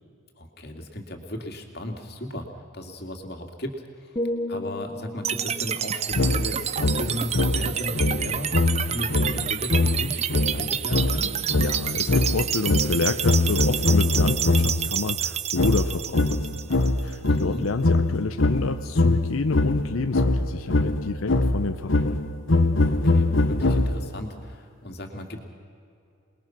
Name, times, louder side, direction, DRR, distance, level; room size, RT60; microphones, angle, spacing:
voice 1, 0.4-2.5 2.7-4.2 4.5-11.4 17.3-17.6 22.8-25.4, left 1 dB, 50° left, 3 dB, 2.5 m, -36 dB
sound 1, 4.2-8.1 8.5-8.8, left 1 dB, 20° left, 0.9 m, -35 dB
sound 2, 5.2-17.3, right 9 dB, 30° right, 0.5 m, -29 dB
sound 3, 6.2-14.9 15.6-24.2, left 2 dB, 70° left, 1.1 m, -23 dB
voice 2, 11.5-22.2, left 3 dB, 90° left, 8 dB, 0.7 m, -29 dB
27.5 x 21.0 x 6.0 m, 2.6 s
head